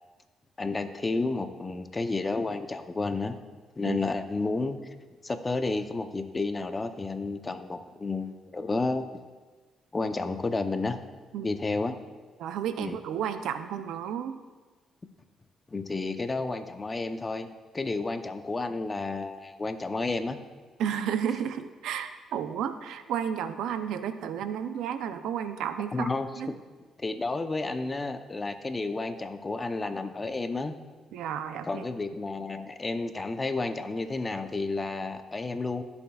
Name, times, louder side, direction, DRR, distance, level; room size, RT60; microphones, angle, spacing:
voice 1, 0.6-3.4 3.8-4.8 5.2-9.0 9.9-11.0 11.4-12.0 12.8-13.0 15.7-17.5 17.7-20.4 25.9-26.5 27.0-30.8 31.7-35.8, left 3 dB, 25° left, 8 dB, 0.7 m, -31 dB
voice 2, 12.4-14.4 20.8-26.1 26.4-26.5 31.1-31.8, right 8 dB, 85° right, 10 dB, 0.5 m, -32 dB
18.5 x 7.1 x 2.4 m, 1.4 s
cardioid pair, 90°, 0 cm